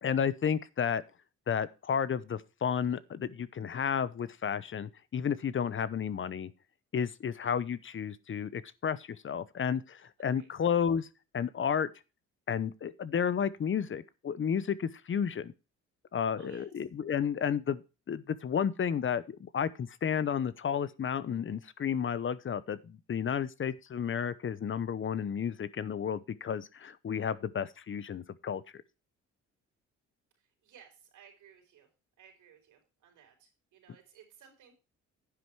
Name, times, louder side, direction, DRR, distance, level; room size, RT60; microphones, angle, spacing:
voice 1, 0.0-1.0 1.5-6.5 6.9-11.1 11.3-11.9 12.5-15.5 16.1-17.8 18.1-28.8, left 7 dB, 40° left, 0.8 m, -32 dB
voice 2, 16.4-16.8 30.4-31.9 32.2-34.8, right 8 dB, 80° right, 4.6 m, -58 dB
10.0 x 8.2 x 4.5 m
cardioid pair, 90°, 30 cm